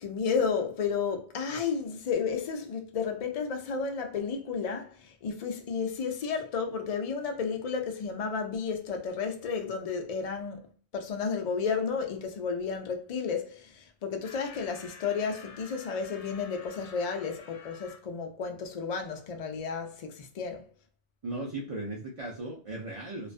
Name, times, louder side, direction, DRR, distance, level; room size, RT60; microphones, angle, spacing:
voice 1, 0.0-10.7 10.9-20.6, left 5 dB, 55° left, 0.4 m, -32 dB
sound 1, 14.2-18.0, left 4 dB, 80° left, 0.9 m, -49 dB
voice 2, 21.2-23.3, right 2 dB, 45° right, 0.4 m, -37 dB
2.3 x 2.3 x 2.4 m
omnidirectional pair, 1.2 m